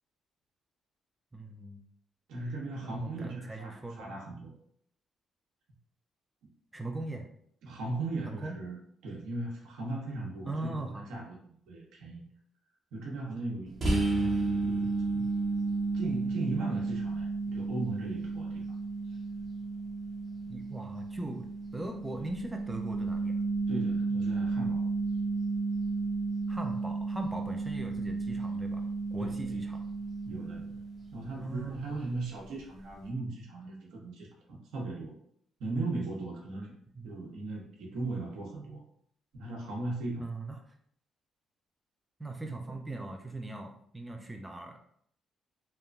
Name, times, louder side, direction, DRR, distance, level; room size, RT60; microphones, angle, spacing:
voice 1, 1.3-1.8 2.4-2.5 2.8-4.1 6.7-7.3 8.3-8.6 10.5-11.1 14.2-14.3 20.5-23.3 26.5-28.8 29.1-29.8 31.4-32.0 36.9-37.1 40.2-40.7 42.2-44.8, right 2 dB, 10° right, 3 dB, 0.4 m, -40 dB
voice 2, 2.3-4.6 7.6-12.2 12.9-15.3 15.9-18.6 23.7-24.8 29.2-29.6 30.2-30.8 31.1-34.3 34.7-35.1 35.6-36.7 37.0-38.8 39.3-40.3, right 2 dB, 85° right, -1 dB, 0.8 m, -38 dB
sound 1, 13.8-31.3, right 3 dB, 35° right, 0.9 m, -32 dB
2.9 x 2.2 x 2.5 m, 0.65 s
cardioid pair, 90°, 0 cm